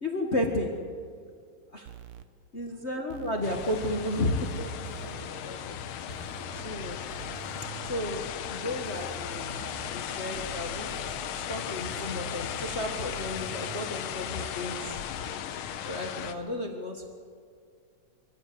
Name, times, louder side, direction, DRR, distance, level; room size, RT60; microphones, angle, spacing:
voice 1, 0.0-0.7 1.7-1.9 2.5-4.7 5.0-5.6 6.1-6.2 6.5-7.0 7.9-10.9 11.3-14.9 15.5-17.1, left 1 dB, 55° left, 2 dB, 0.7 m, -33 dB
sound 1, 1.9-2.2 3.1-4.1 4.3-5.3 6.1-8.3 8.8-9.9 10.3-11.3 11.8-13.9, right 9 dB, 70° right, 1.7 m, -45 dB
sound 2, 3.4-16.4, left 9 dB, 75° left, 2.4 m, -36 dB
24.5 x 15.0 x 7.9 m, 2.2 s
omnidirectional pair, 3.8 m